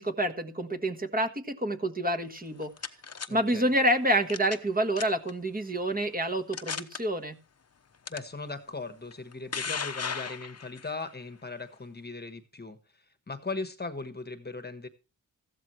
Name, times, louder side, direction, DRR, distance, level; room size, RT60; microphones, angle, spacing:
voice 1, 0.0-2.7 3.3-7.4, right 1 dB, 25° right, 1.5 m, -28 dB
sound 1, 2.4-3.3 4.3-4.7 5.0-5.3 5.9-6.0 6.5-7.0 8.1-8.2 9.1-10.9, left 6 dB, 45° left, 1.0 m, -35 dB
voice 2, 3.3-3.7 8.1-14.9, left 3 dB, 25° left, 1.3 m, -39 dB
14.5 x 12.0 x 3.2 m
wide cardioid pair, 110°, 36 cm